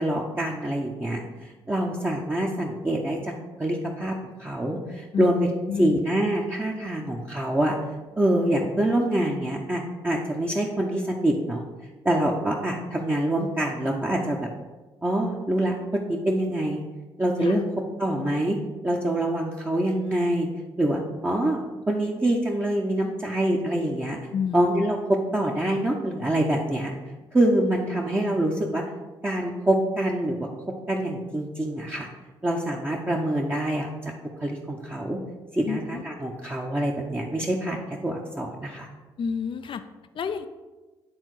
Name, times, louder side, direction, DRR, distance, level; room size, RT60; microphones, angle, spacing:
voice 1, 0.0-3.3 3.6-5.5 5.8-7.8 8.2-11.6 12.0-14.5 15.0-16.8 17.2-17.6 18.0-18.6 18.8-20.5 20.8-24.2 24.5-26.9 27.3-28.8 29.2-30.5 30.9-32.1 32.4-34.1 34.4-35.2 35.5-38.9, right 1 dB, 20° right, -3 dB, 1.0 m, -25 dB
voice 2, 5.7-6.0 17.4-17.6 24.3-24.7 35.6-36.1 39.2-39.8 40.1-40.5, left 6 dB, 45° left, 10 dB, 0.5 m, -29 dB
8.9 x 3.6 x 4.8 m, 1.2 s
hypercardioid pair, 50°, 12 cm